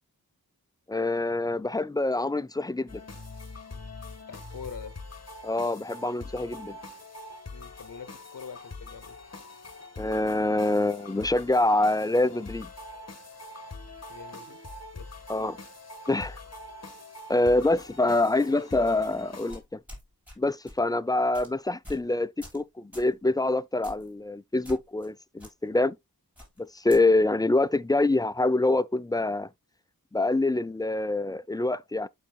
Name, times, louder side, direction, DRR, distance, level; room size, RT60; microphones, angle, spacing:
voice 1, 0.9-3.0 5.4-6.8 10.0-12.7 15.3-15.6 16.1-16.4 17.3-19.8 20.4-26.0 26.6-29.5 30.1-32.1, left 2 dB, 10° left, 0.3 m, -25 dB
sound 1, 2.9-19.6, left 2 dB, 45° left, 1.3 m, -44 dB
voice 2, 4.3-5.0 7.5-9.2 14.1-14.6 14.9-15.2, left 6 dB, 60° left, 0.9 m, -44 dB
sound 2, 19.5-20.4 20.7-20.9 21.3-21.5 21.8-22.1 22.4-22.6 22.9-23.1 23.8-24.1 24.6-25.1 25.4-25.5 26.4-27.0, left 1 dB, 5° right, 5.5 m, -45 dB
12.0 x 4.1 x 2.2 m
wide cardioid pair, 40°, 37 cm